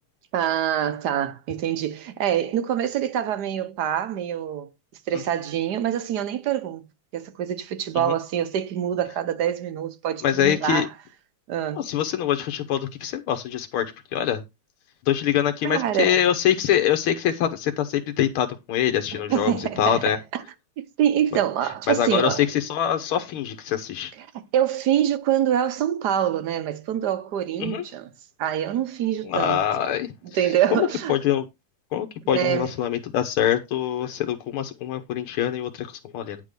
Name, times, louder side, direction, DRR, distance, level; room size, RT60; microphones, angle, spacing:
voice 1, 0.3-4.7 5.1-6.8 7.1-10.9 11.5-11.9 15.6-16.2 19.1-20.4 20.8-22.5 24.2-28.1 28.4-29.6 30.3-31.2 32.3-32.7, right 10 dB, 60° right, 1.3 m, -25 dB
voice 2, 10.2-10.9 11.8-14.4 15.1-20.2 21.9-24.1 27.6-27.8 29.3-30.1 30.7-31.5 31.9-36.4, left 10 dB, 85° left, 1.8 m, -24 dB
10.0 x 3.7 x 6.5 m
omnidirectional pair, 2.3 m